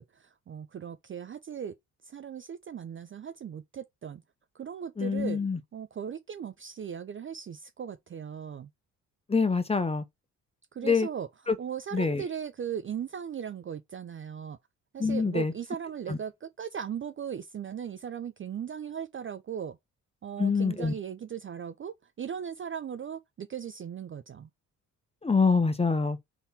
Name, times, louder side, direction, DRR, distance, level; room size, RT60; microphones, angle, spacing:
voice 1, 0.0-1.7 2.0-4.2 4.5-5.4 5.7-8.7 10.7-11.3 11.6-14.6 14.9-19.8 20.2-24.5, right 8 dB, 30° right, 0.5 m, -38 dB
voice 2, 5.0-5.6 9.3-10.0 10.8-11.1 11.5-11.6 11.9-12.2 15.0-15.5 16.1-16.2 20.4-20.9 25.2-26.2, left 4 dB, 15° left, 0.7 m, -25 dB
4.0 x 2.8 x 3.6 m
hypercardioid pair, 45°, 43 cm